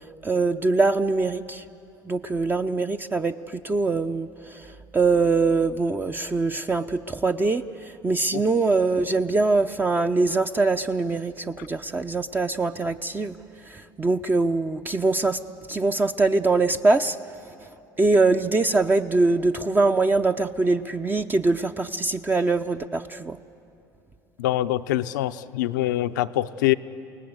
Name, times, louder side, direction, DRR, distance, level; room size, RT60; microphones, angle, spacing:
voice 1, 0.2-1.6 2.1-13.4 13.7-15.4 15.7-17.2 18.0-23.4, right 3 dB, 20° right, 7 dB, 0.7 m, -23 dB
voice 2, 24.4-26.7, left 15 dB, 80° left, 12 dB, 0.6 m, -24 dB
29.0 x 18.5 x 8.0 m, 2.6 s
hypercardioid pair, 80°, 10 cm